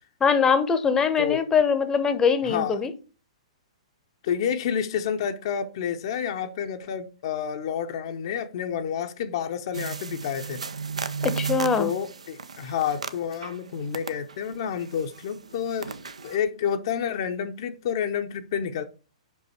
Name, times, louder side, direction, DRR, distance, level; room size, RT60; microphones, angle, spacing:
voice 1, 0.2-2.9 11.2-11.9, left 6 dB, 15° left, 0.8 m, -22 dB
voice 2, 2.4-2.8 4.2-10.6 11.8-15.9 16.2-18.8, left 8 dB, 50° left, 0.7 m, -29 dB
sound 1, 9.7-13.6 13.9-16.4, right 5 dB, 75° right, 0.6 m, -34 dB
5.4 x 5.4 x 4.4 m
figure-of-eight pair, 115°, 4 cm